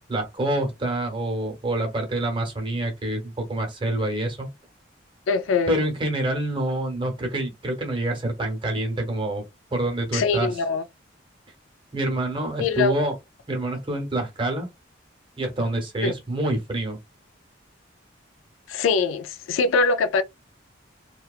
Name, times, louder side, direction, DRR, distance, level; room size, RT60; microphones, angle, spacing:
voice 1, 0.1-4.5 5.7-9.4 9.7-10.5 11.9-13.1 13.5-14.7 15.4-17.0, right 1 dB, 25° right, 0.8 m, -26 dB
voice 2, 5.3-5.8 10.1-10.8 12.6-13.1 16.0-16.1 18.7-20.2, left 4 dB, 90° left, 0.4 m, -23 dB
2.8 x 2.2 x 2.3 m
head